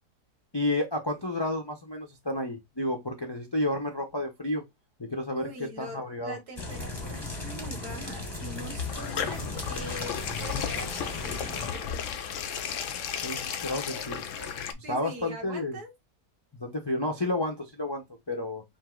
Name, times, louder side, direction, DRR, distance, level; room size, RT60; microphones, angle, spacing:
voice 1, 0.5-4.6 5.1-5.5 5.8-6.4 13.2-15.8 16.6-18.6, left 1 dB, 40° left, 0.3 m, -31 dB
voice 2, 5.3-12.1 14.8-15.9, right 1 dB, 65° right, 2.0 m, -43 dB
sound 1, 6.6-11.7, left 2 dB, 20° left, 0.7 m, -37 dB
sound 2, 8.4-14.7, left 8 dB, 70° left, 0.7 m, -34 dB
5.3 x 2.0 x 3.7 m
omnidirectional pair, 1.8 m